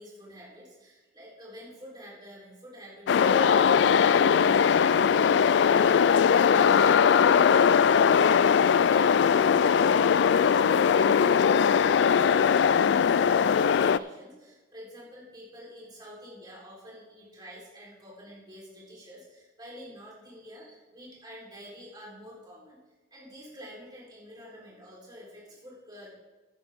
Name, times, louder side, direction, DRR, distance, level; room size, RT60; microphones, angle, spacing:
voice 1, 0.0-22.8 23.1-26.1, equal, 20° right, -5 dB, 3.8 m, -48 dB
sound 1, 3.1-14.0, left 7 dB, 65° left, 0.3 m, -20 dB
13.5 x 9.8 x 3.6 m, 1.2 s
head